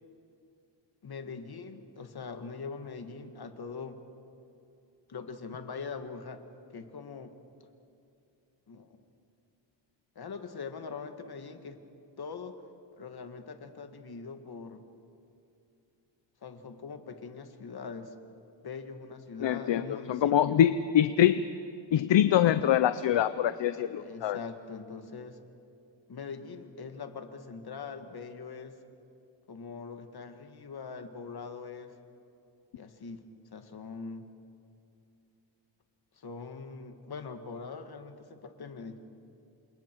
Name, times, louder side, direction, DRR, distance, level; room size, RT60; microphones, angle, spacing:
voice 1, 1.0-4.0 5.1-6.4 6.7-7.3 8.7-9.0 10.2-11.8 12.2-12.5 13.0-14.9 16.4-18.1 18.6-20.6 24.0-25.4 26.1-28.8 29.5-32.0 32.7-33.2 33.5-34.3 36.1-39.0, left 5 dB, 55° left, 7 dB, 1.7 m, -42 dB
voice 2, 19.4-21.5 21.9-24.4, left 10 dB, 70° left, 12 dB, 0.7 m, -24 dB
29.0 x 27.0 x 4.6 m, 2.7 s
wide cardioid pair, 150°, 45 cm